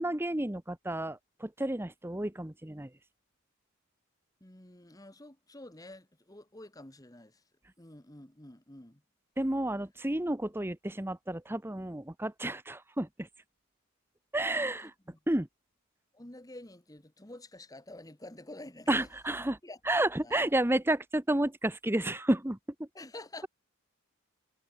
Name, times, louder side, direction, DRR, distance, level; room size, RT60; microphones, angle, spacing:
voice 1, 0.0-2.9 9.4-13.3 14.3-14.9 15.3-15.5 18.9-19.6 19.9-22.9, right 1 dB, 10° right, 0.8 m, -31 dB
voice 2, 4.4-7.4 7.8-9.0 14.5-15.2 16.1-19.1 19.6-19.8 20.2-20.5 22.9-23.5, left 1 dB, 15° left, 1.5 m, -49 dB
head